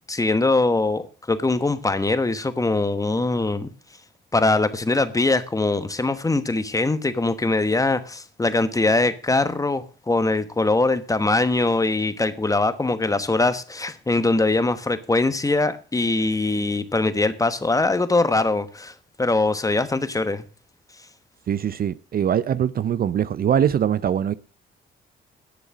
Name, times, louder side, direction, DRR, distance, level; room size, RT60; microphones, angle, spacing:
voice 1, 0.1-3.7 4.3-20.5, left 2 dB, 15° left, 1.2 m, -22 dB
voice 2, 21.5-24.3, right 9 dB, 50° right, 0.5 m, -22 dB
10.0 x 6.5 x 7.4 m
cardioid pair, 90°, 20 cm